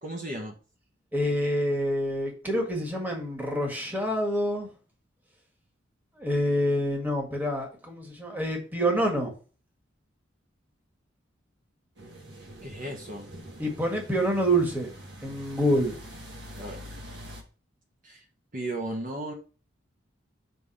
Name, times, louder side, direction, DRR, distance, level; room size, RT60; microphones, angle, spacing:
voice 1, 0.0-0.5 12.6-13.2 16.6-16.9 18.0-18.2 18.5-19.3, right 1 dB, 45° right, 1 dB, 1.3 m, -35 dB
voice 2, 1.1-4.7 6.2-9.3 13.6-14.9 15.2-16.0, equal, 10° right, 0 dB, 1.6 m, -27 dB
sound 1, 12.0-17.4, equal, 60° right, 1.7 m, -45 dB
5.9 x 3.7 x 5.7 m, 0.36 s
head